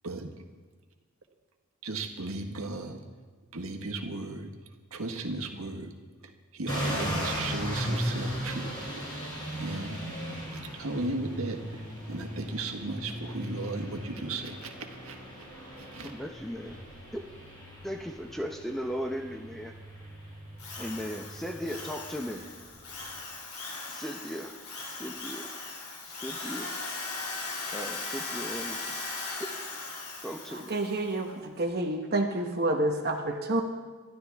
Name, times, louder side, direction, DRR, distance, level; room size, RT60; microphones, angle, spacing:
voice 1, 1.8-3.0 3.5-4.5 4.9-5.9 6.5-9.0 9.6-10.0 10.5-15.5 15.8-16.1, right 2 dB, 75° right, 4 dB, 1.5 m, -36 dB
sound 1, 6.7-23.2, equal, 20° left, 4.6 m, -37 dB
voice 2, 16.0-16.8 17.1-17.2 17.8-19.7 20.8-22.4 23.9-24.6 24.9-25.5 26.1-26.7 27.7-29.0 29.4-29.5 30.2-30.8, equal, ahead, 3 dB, 0.7 m, -37 dB
Drill, 20.6-31.0, left 3 dB, 85° left, 3.1 m, -38 dB
voice 3, 30.5-33.6, right 2 dB, 45° right, 3 dB, 1.0 m, -29 dB
25.5 x 12.0 x 3.5 m, 1.4 s
head